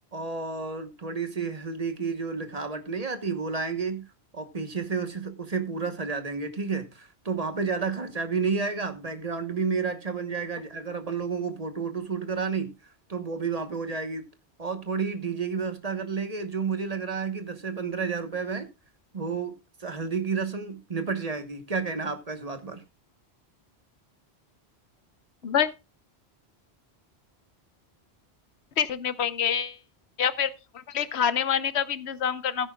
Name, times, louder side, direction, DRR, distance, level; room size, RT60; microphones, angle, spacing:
voice 1, 0.1-4.1 4.3-12.7 13.1-14.3 14.6-18.7 19.1-22.8, right 5 dB, 35° right, 1.2 m, -31 dB
voice 2, 28.8-29.8 30.2-30.5 30.9-32.7, left 8 dB, 85° left, 1.0 m, -26 dB
15.5 x 9.7 x 2.3 m
omnidirectional pair, 1.1 m